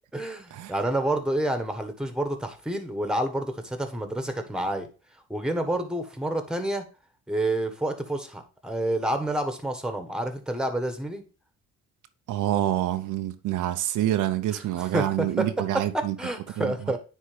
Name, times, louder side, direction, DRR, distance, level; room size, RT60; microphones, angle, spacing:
voice 1, 0.1-4.9 5.3-6.8 7.3-11.2 14.8-15.5 15.9-17.0, right 1 dB, 5° right, 1.3 m, -28 dB
voice 2, 12.3-16.2 16.6-16.7, right 13 dB, 80° right, 0.7 m, -27 dB
9.8 x 3.7 x 3.3 m
cardioid pair, 90°, 30 cm